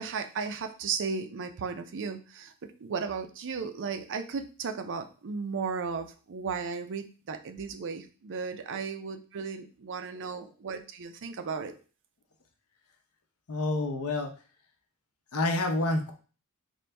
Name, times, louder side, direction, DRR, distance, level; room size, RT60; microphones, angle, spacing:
voice 1, 0.0-2.5 2.8-11.7, right 5 dB, 60° right, 8 dB, 0.5 m, -35 dB
voice 2, 13.5-14.3 15.3-16.1, left 2 dB, 70° left, 4 dB, 0.8 m, -28 dB
4.4 x 2.6 x 3.3 m, 0.36 s
head